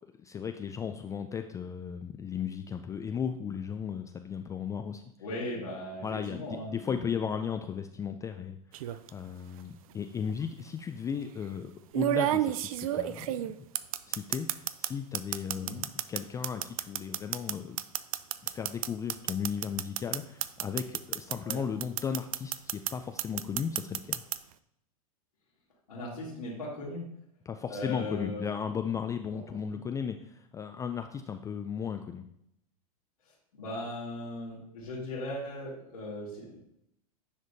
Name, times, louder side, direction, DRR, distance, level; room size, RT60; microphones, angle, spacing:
voice 1, 0.0-5.0 6.0-13.5 14.1-17.8 18.4-24.2 27.5-32.2, left 7 dB, 15° left, 7 dB, 0.3 m, -36 dB
voice 2, 5.2-7.0 15.5-15.8 21.4-21.6 25.9-27.0 27.7-28.4 29.5-29.6 33.5-36.6, left 1 dB, 85° left, -10 dB, 2.5 m, -38 dB
sound 1, 8.7-9.1 10.3-10.4 11.9-14.9 15.1-21.5 21.8-22.9 23.2-24.4, right 13 dB, 70° right, 0.4 m, -30 dB
9.7 x 5.0 x 2.7 m, 0.76 s
hypercardioid pair, 110°, 19 cm